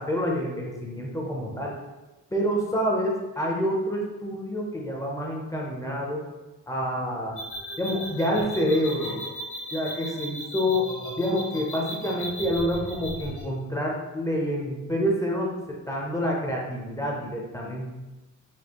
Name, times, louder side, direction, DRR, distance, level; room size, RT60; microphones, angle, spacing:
voice 1, 0.0-1.8 2.3-6.2 6.7-7.3 7.8-9.2 9.7-10.9 11.2-17.9, equal, 10° left, -2 dB, 0.4 m, -27 dB
sound 1, 7.4-13.4, equal, 75° left, 1.4 m, -36 dB
4.3 x 2.6 x 2.8 m, 1.1 s
wide cardioid pair, 165°, 31 cm